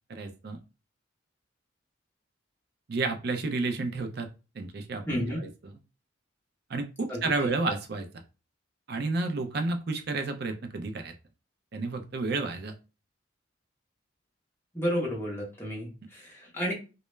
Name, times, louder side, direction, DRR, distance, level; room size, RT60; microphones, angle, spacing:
voice 1, 0.1-0.6 2.9-4.3 4.6-5.7 6.7-8.1 8.9-11.1 11.7-12.7, right 3 dB, 55° right, 6 dB, 0.4 m, -31 dB
voice 2, 5.1-5.4 7.1-7.2 14.7-16.7, equal, 10° left, -3 dB, 0.7 m, -31 dB
2.2 x 2.0 x 3.1 m, 0.31 s
head